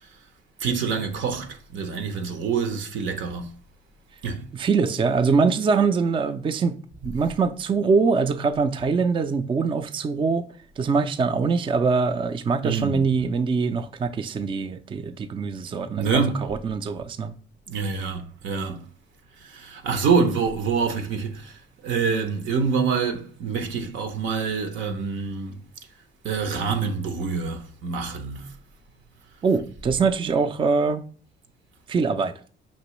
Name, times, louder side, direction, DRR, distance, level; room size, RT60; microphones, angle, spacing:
voice 1, 0.6-3.5 4.2-4.4 12.6-13.0 16.0-16.5 17.7-18.8 19.4-21.6 21.8-25.6 26.2-28.5, right 5 dB, 75° right, 0.7 m, -26 dB
voice 2, 4.5-10.5 10.8-17.4 29.4-31.0 31.9-32.3, right 5 dB, 25° right, 0.3 m, -23 dB
5.2 x 3.0 x 3.0 m
cardioid pair, 90°, 20 cm